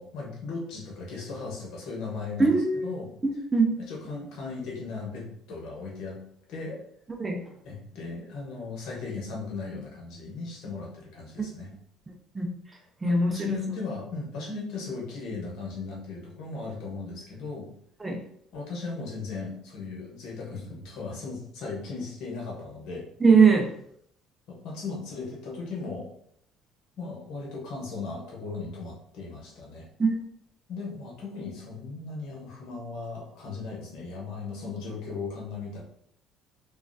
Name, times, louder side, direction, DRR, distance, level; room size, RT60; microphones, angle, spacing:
voice 1, 0.0-3.1 3.8-6.2 6.5-6.8 7.6-11.7 13.0-17.7 18.5-23.0 24.5-26.1 27.0-29.9 30.7-35.8, left 4 dB, 70° left, -2 dB, 1.0 m, -37 dB
voice 2, 2.4-2.9 3.2-3.8 7.2-7.4 12.4-12.5 13.0-13.3 18.0-18.2 23.2-23.7 30.0-30.2, right 4 dB, 20° right, 3 dB, 0.5 m, -21 dB
3.1 x 2.4 x 2.6 m, 0.68 s
cardioid pair, 100°, 0 cm